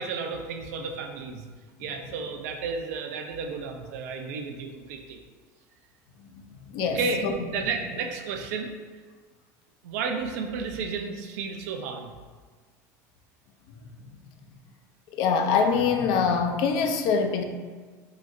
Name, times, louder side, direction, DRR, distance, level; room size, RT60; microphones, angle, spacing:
voice 1, 0.0-1.4 1.8-5.2 6.8-8.7 9.8-12.1, right 4 dB, 80° right, 3 dB, 0.4 m, -32 dB
voice 2, 6.7-7.3 15.1-17.4, left 5 dB, 60° left, 5 dB, 0.4 m, -24 dB
3.8 x 2.0 x 2.5 m, 1.4 s
supercardioid pair, 95°, 9 cm